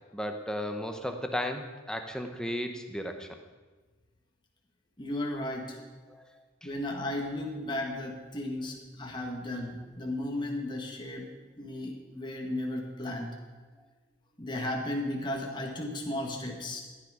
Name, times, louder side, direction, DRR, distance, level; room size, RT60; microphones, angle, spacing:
voice 1, 0.1-3.4 6.1-6.2 6.6-6.7, equal, 5° left, 5 dB, 0.9 m, -35 dB
voice 2, 5.0-5.8 6.6-11.3 11.6-13.3 14.4-16.8, left 1 dB, 25° left, 0 dB, 1.5 m, -34 dB
14.5 x 9.6 x 4.9 m, 1.3 s
head